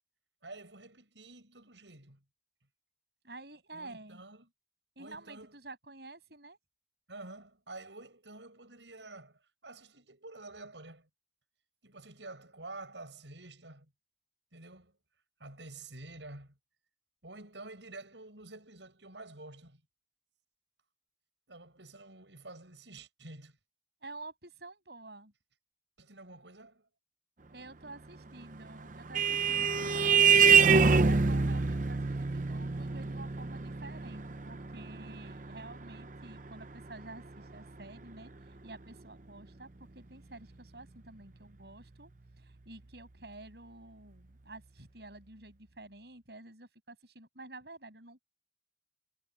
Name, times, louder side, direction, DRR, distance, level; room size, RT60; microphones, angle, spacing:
voice 1, 0.4-2.2 3.7-4.5 5.0-5.6 7.1-11.1 11.8-13.9 14.5-14.9 15.4-16.6 17.2-19.8 21.5-23.6 26.0-26.9, right 2 dB, 80° right, 8.0 m, -49 dB
voice 2, 3.2-4.2 5.0-6.6 24.0-25.3 27.5-38.3 38.6-42.1 42.4-48.2, right 2 dB, 65° right, 7.7 m, -50 dB
Vehicle horn car horn honking, 28.5-37.5, right 5 dB, 45° right, 0.8 m, -26 dB
head